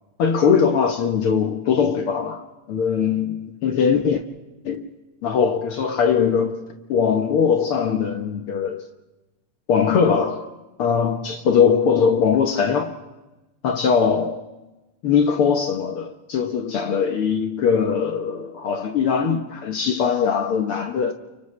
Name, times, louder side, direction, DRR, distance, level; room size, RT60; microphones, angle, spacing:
voice 1, 0.2-4.2 4.6-4.9 5.2-6.6 6.9-8.8 9.7-10.5 10.8-13.0 13.6-14.4 15.0-21.1, left 6 dB, 60° left, 1.6 m, -21 dB
29.5 x 29.5 x 3.2 m
omnidirectional pair, 3.4 m